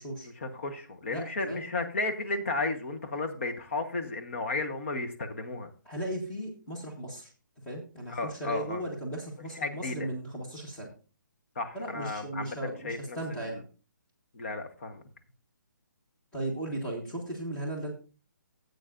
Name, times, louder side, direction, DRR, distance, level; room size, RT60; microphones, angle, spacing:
voice 1, 0.4-5.7 8.1-8.8 9.5-10.1 11.5-13.6 14.3-15.1, left 3 dB, 40° left, 6 dB, 1.1 m, -34 dB
voice 2, 1.1-1.6 5.8-7.3 7.6-10.9 11.7-13.6 16.3-17.9, right 1 dB, 5° left, -2 dB, 1.3 m, -36 dB
13.5 x 8.2 x 2.5 m, 0.35 s
hypercardioid pair, 175°, 11 cm